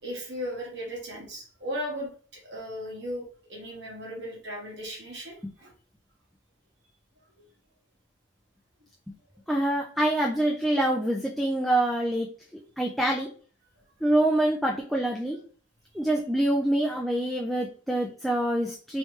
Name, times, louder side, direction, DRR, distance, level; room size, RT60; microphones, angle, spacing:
voice 1, 0.0-2.1 2.4-5.7, equal, 60° right, -2 dB, 1.4 m, -36 dB
voice 2, 9.5-12.3 12.8-13.3 14.0-15.4 15.9-19.0, right 1 dB, ahead, -2 dB, 0.3 m, -25 dB
3.2 x 3.1 x 3.1 m, 0.43 s
head